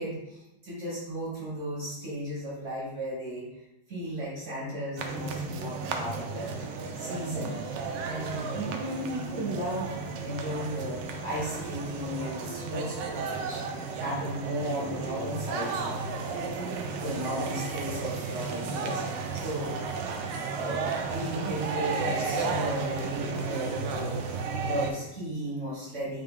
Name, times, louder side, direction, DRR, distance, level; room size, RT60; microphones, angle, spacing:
voice 1, 0.0-3.6 3.9-6.5 6.9-16.1 16.7-19.0 19.3-19.8 20.3-26.2, equal, 40° right, -6 dB, 1.3 m, -35 dB
sound 1, 5.0-24.9, right 4 dB, 75° right, 1.1 m, -33 dB
3.9 x 3.8 x 3.6 m, 0.90 s
omnidirectional pair, 2.4 m